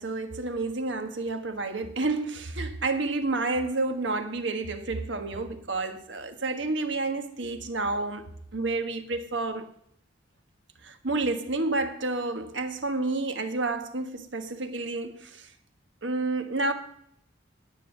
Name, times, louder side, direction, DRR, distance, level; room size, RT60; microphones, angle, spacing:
voice 1, 0.0-9.7 10.8-15.5 16.0-16.7, right 3 dB, 70° right, 1.4 m, -30 dB
9.7 x 9.5 x 7.9 m
head